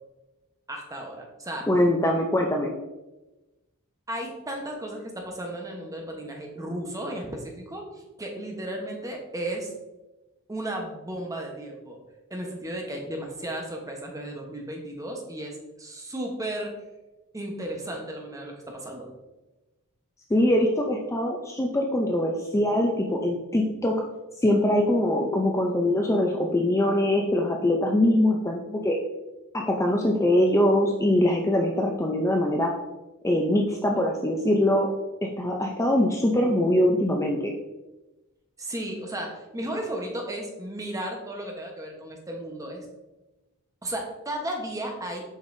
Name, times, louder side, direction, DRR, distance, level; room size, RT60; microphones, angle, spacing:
voice 1, 0.7-1.7 4.1-9.7 10.5-12.0 12.3-16.7 17.3-19.1 38.6-42.9 43.8-45.2, right 1 dB, 15° right, 1 dB, 1.0 m, -34 dB
voice 2, 1.7-2.7 20.3-23.9 24.4-29.0 29.5-32.7 33.2-34.9 35.2-37.5, left 1 dB, 15° left, 1 dB, 0.5 m, -23 dB
7.2 x 5.4 x 2.6 m, 1.1 s
head